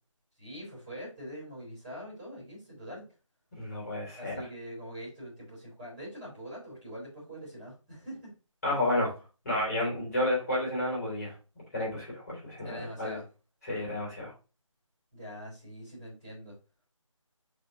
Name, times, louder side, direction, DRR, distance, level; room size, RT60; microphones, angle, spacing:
voice 1, 0.4-3.0 4.2-8.3 8.7-9.0 12.6-13.3 15.1-16.5, equal, 15° right, -9 dB, 3.2 m, -44 dB
voice 2, 3.5-4.3 8.6-9.1 9.4-11.3 11.7-13.2 13.6-14.3, left 1 dB, 30° left, -5 dB, 3.0 m, -31 dB
5.1 x 3.6 x 5.1 m, 0.32 s
figure-of-eight pair, 160°, 17 cm